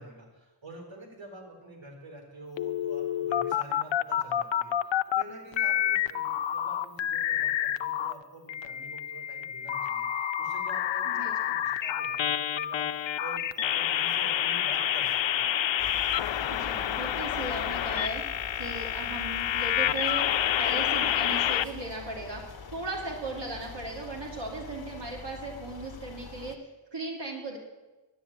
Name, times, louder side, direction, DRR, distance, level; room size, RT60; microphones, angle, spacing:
voice 1, 0.0-15.6, right 1 dB, 90° right, 0 dB, 3.8 m, -47 dB
sound 1, 2.6-5.2 5.5-8.1 8.5-21.7, left 10 dB, 90° left, 0.6 m, -28 dB
voice 2, 11.0-11.4 16.5-18.2 18.5-20.3 20.6-22.4 22.7-26.6 26.9-27.6, right 2 dB, 70° right, -2 dB, 2.8 m, -37 dB
sound 2, 15.8-26.6, left 4 dB, 55° left, 1.3 m, -44 dB
11.0 x 8.8 x 8.7 m, 1.1 s
wide cardioid pair, 65°, 44 cm